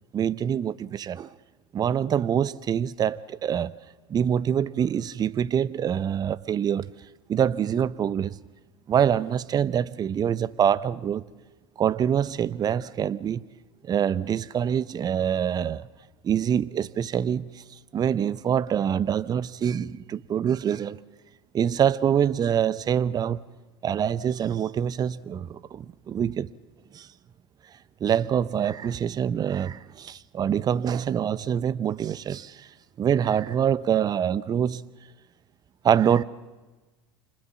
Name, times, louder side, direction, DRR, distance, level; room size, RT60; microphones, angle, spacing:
voice 1, 0.1-1.3 1.7-3.7 4.1-6.9 7.3-8.4 8.9-11.3 11.8-13.4 13.8-15.9 16.2-17.6 17.9-21.0 21.5-23.4 23.8-26.5 26.9-27.1 28.0-32.7 33.0-34.8 35.8-36.2, right 8 dB, 30° right, 0.8 m, -25 dB
29.5 x 26.5 x 7.2 m
figure-of-eight pair, 75°, 13 cm